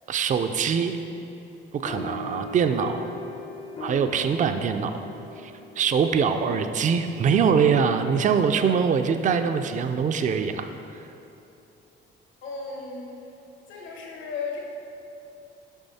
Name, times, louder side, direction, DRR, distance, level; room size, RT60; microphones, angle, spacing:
voice 1, 0.1-0.9 1.7-3.1 3.8-4.9 5.4-10.7, right 6 dB, 40° right, 8 dB, 0.4 m, -23 dB
sound 1, 1.9-8.7, left 2 dB, 30° left, 0.5 m, -41 dB
voice 2, 12.4-13.1 13.7-14.6, left 4 dB, 80° left, -1 dB, 1.2 m, -35 dB
7.1 x 5.0 x 4.2 m, 2.9 s
cardioid pair, 90°, 20 cm